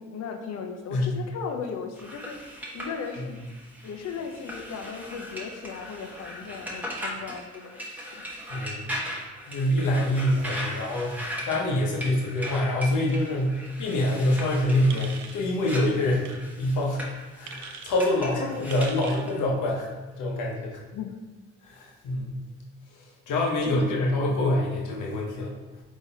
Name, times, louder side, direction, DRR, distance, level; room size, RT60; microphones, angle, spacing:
voice 1, 0.0-3.4 3.8-8.2 20.9-21.2 23.6-24.1, left 6 dB, 60° left, 5 dB, 0.6 m, -37 dB
sound 1, 2.0-19.4, equal, 5° right, 0.9 m, -38 dB
voice 2, 8.5-9.2 9.5-17.0 17.3-19.9 20.2-20.8 21.6-22.4 23.0-25.6, left 1 dB, 80° left, -2 dB, 0.9 m, -26 dB
sound 2, 14.9-15.4 16.2-16.4 17.5-18.0 18.7-19.3, right 7 dB, 70° right, 0.5 m, -42 dB
3.9 x 3.0 x 4.1 m, 1.2 s
cardioid pair, 90°, 30 cm